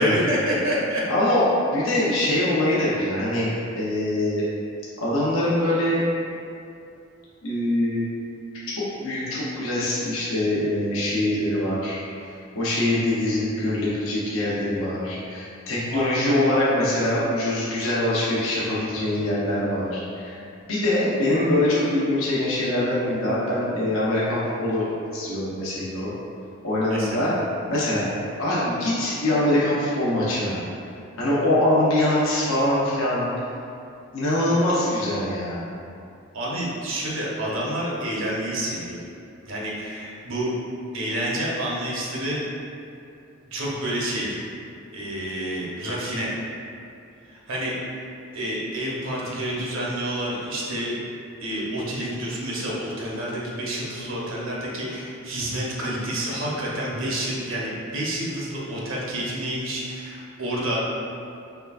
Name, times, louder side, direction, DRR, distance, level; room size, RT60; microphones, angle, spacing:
voice 1, 0.0-1.1 15.9-16.2 18.9-19.2 26.9-27.3 36.3-39.0 39.5-40.5 40.9-42.4 43.5-44.4 44.9-46.3 47.3-47.7 48.3-51.0 51.4-60.8, right 1 dB, 75° right, -5 dB, 0.8 m, -28 dB
voice 2, 1.1-4.5 5.0-6.0 7.4-8.1 8.7-12.0 12.5-20.4 20.7-26.1 26.6-27.3 27.7-28.1 28.4-30.6 31.2-33.3 34.1-35.6, left 1 dB, 80° left, -8 dB, 0.7 m, -23 dB
4.4 x 3.2 x 2.4 m, 2.5 s
head